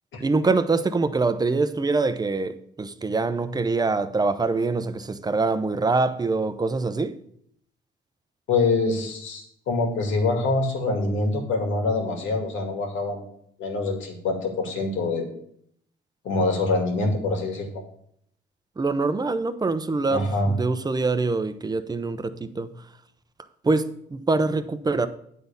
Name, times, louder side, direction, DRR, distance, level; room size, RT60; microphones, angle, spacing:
voice 1, 0.2-7.2 18.8-22.7 23.6-25.1, right 3 dB, 20° right, 0.6 m, -24 dB
voice 2, 8.5-13.2 13.6-15.3 16.2-17.8 20.1-20.5, left 3 dB, 75° left, 2.1 m, -25 dB
9.3 x 4.1 x 6.8 m
cardioid pair, 90°, 20 cm